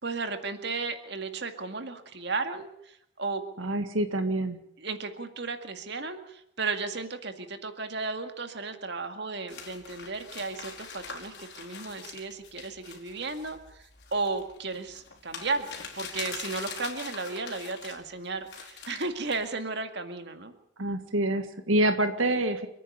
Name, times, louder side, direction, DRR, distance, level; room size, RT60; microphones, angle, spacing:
voice 1, 0.0-3.4 4.8-20.5, right 3 dB, 55° right, 7 dB, 2.1 m, -34 dB
voice 2, 3.6-4.6 20.8-22.7, right 1 dB, 75° right, 8 dB, 1.8 m, -26 dB
sound 1, 9.5-18.0 18.5-19.5, left 5 dB, 55° left, 4.9 m, -43 dB
29.5 x 10.0 x 9.8 m, 0.74 s
head